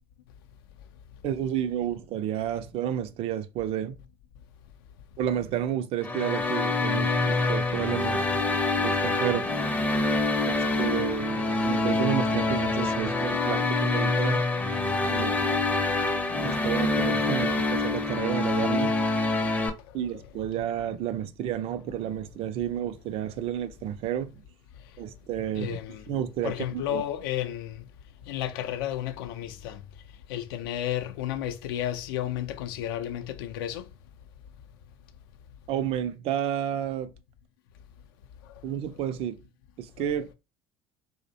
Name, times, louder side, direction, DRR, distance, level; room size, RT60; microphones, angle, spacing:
voice 1, 1.2-4.0 5.2-8.3 8.7-9.5 10.5-14.4 15.1-15.6 16.4-19.0 19.9-24.4 25.0-25.8 26.1-27.0 35.7-37.1 38.6-39.4 39.8-40.3, right 10 dB, 50° right, 0.4 m, -31 dB
sound 1, 6.0-19.7, left 2 dB, 10° left, 0.5 m, -26 dB
sound 2, 8.6-14.4, left 4 dB, 45° left, 0.8 m, -45 dB
voice 2, 25.6-26.0 26.4-27.9 28.3-29.8 30.3-33.8, left 11 dB, 70° left, 0.4 m, -32 dB
2.4 x 2.1 x 2.7 m
hypercardioid pair, 70°, 12 cm